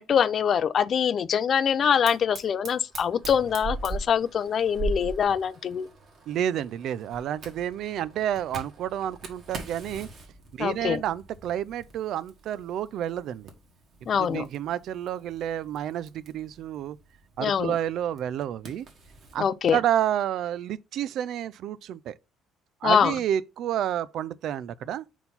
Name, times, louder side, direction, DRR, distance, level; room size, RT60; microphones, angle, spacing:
voice 1, 0.0-5.9 10.6-11.0 14.1-14.5 17.4-17.8 19.4-19.8 22.8-23.1, left 7 dB, 40° left, 0.4 m, -24 dB
Fire, 2.1-19.4, right 3 dB, 45° right, 1.6 m, -41 dB
voice 2, 6.3-10.1 10.5-13.5 14.0-17.0 17.4-18.9 19.3-19.4 19.7-22.1 22.8-25.0, right 10 dB, 60° right, 0.3 m, -30 dB
4.4 x 4.1 x 5.5 m
cardioid pair, 135°, 0 cm